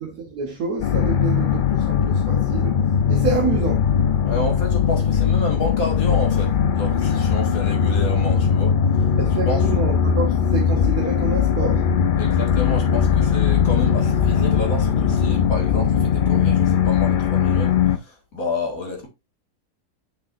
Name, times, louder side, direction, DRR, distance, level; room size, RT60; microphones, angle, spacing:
voice 1, 0.0-3.9 9.2-11.9, right 4 dB, 65° right, 1.7 m, -28 dB
sound 1, 0.8-18.0, left 7 dB, 85° left, 0.4 m, -19 dB
voice 2, 4.2-8.8 9.5-9.6 12.2-19.1, left 2 dB, 60° left, 2.4 m, -30 dB
7.0 x 6.1 x 2.6 m
omnidirectional pair, 1.7 m